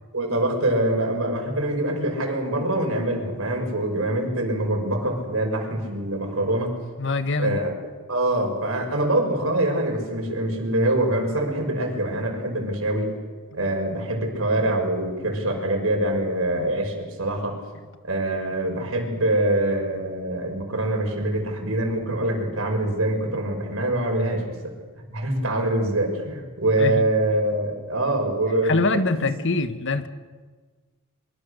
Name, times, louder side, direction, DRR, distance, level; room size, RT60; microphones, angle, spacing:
voice 1, 0.1-6.7 7.4-7.7 8.1-13.1 13.5-17.6 18.0-24.7 25.1-29.0, right 1 dB, 70° right, 1 dB, 6.1 m, -24 dB
voice 2, 7.0-7.6 26.8-27.0 28.6-30.1, left 3 dB, 60° left, 10 dB, 1.4 m, -24 dB
24.5 x 23.5 x 6.7 m, 1.4 s
head